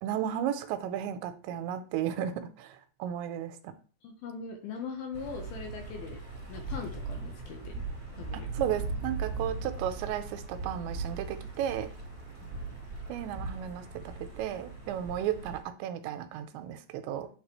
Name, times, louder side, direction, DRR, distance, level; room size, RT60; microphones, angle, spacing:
voice 1, 0.0-3.7 8.3-11.9 13.1-17.3, right 10 dB, 90° right, 9 dB, 3.0 m, -34 dB
voice 2, 4.0-6.2 6.5-7.8 8.2-8.5 12.4-12.5, left 5 dB, 70° left, 3 dB, 2.6 m, -41 dB
sound 1, 5.1-15.6, right 3 dB, 25° right, 2.7 m, -39 dB
8.8 x 6.7 x 3.2 m, 0.40 s
omnidirectional pair, 5.2 m